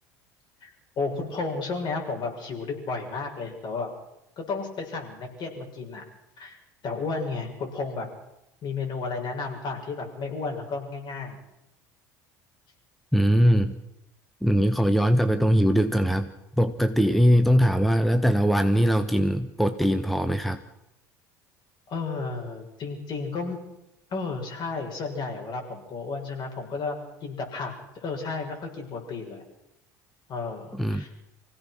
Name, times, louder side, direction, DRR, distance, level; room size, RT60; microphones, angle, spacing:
voice 1, 1.0-3.9 4.4-6.0 6.4-6.6 6.8-8.1 8.6-11.4 21.9-23.6 24.1-27.0 27.2-27.7 28.0-29.4 30.3-31.1, left 4 dB, 50° left, 1 dB, 6.6 m, -32 dB
voice 2, 13.1-13.7 14.4-16.3 16.6-20.6 30.7-31.0, equal, ahead, 9 dB, 1.3 m, -21 dB
25.0 x 17.0 x 6.2 m, 0.87 s
hypercardioid pair, 70°, 10 cm